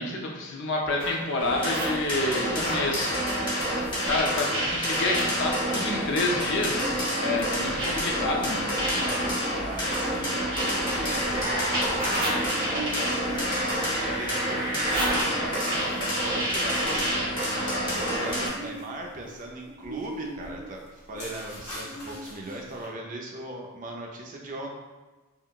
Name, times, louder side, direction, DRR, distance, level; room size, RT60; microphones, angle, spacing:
voice 1, 0.0-3.2 4.1-8.6, left 2 dB, 55° left, 0 dB, 0.5 m, -28 dB
sound 1, 0.8-2.9 4.0-5.3 6.4-6.5 7.8-17.4, right 1 dB, 50° right, 1.4 m, -32 dB
sound 2, 1.4-18.5, equal, 20° left, 0.7 m, -29 dB
voice 2, 3.5-3.9 8.9-12.2 12.7-13.9 14.2-24.7, right 1 dB, 35° right, 0 dB, 0.4 m, -39 dB
sound 3, 3.6-4.2 4.5-4.6 4.9-5.3 5.7-22.8, right 1 dB, 85° left, 0.8 m, -42 dB
3.7 x 2.1 x 2.3 m, 1.3 s
head